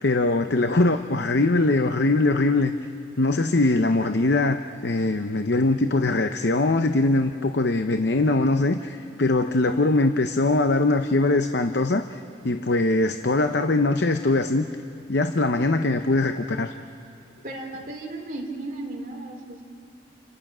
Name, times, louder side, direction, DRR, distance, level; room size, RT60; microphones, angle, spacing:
voice 1, 0.0-2.7 3.2-14.6 15.1-16.7, left 2 dB, 55° left, 8 dB, 0.7 m, -22 dB
voice 2, 17.4-19.6, right 2 dB, 40° right, 0 dB, 3.1 m, -35 dB
29.5 x 25.0 x 6.2 m, 2.7 s
head